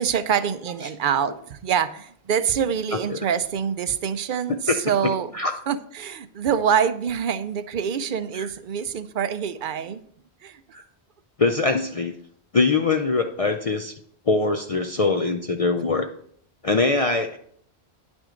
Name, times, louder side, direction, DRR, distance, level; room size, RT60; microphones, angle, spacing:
voice 1, 0.0-5.3 5.7-10.0 10.4-10.6, right 8 dB, 60° right, 13 dB, 0.6 m, -25 dB
voice 2, 11.4-12.1 12.5-14.0 14.3-16.1 16.6-17.4, left 3 dB, 45° left, 5 dB, 0.5 m, -22 dB
10.0 x 6.2 x 3.8 m, 0.64 s
omnidirectional pair, 1.1 m